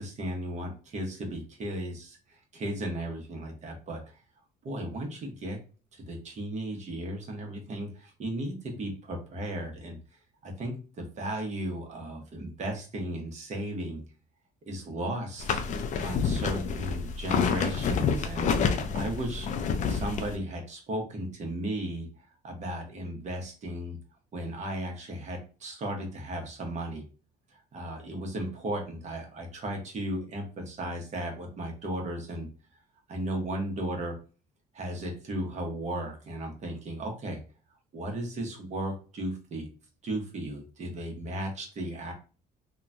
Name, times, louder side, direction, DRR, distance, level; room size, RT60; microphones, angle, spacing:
voice 1, 0.0-4.2 4.6-5.6 5.9-10.0 10.4-14.0 14.7-15.6 16.0-18.5 18.9-19.5 19.9-24.0 24.3-27.0 27.7-32.5 33.1-34.2 34.7-37.4 37.9-39.7 40.0-42.1, right 1 dB, 45° right, 2 dB, 0.9 m, -35 dB
sound 1, 15.4-20.3, left 6 dB, 45° left, 0.4 m, -28 dB
3.0 x 2.2 x 2.5 m, 0.35 s
cardioid pair, 110°, 17 cm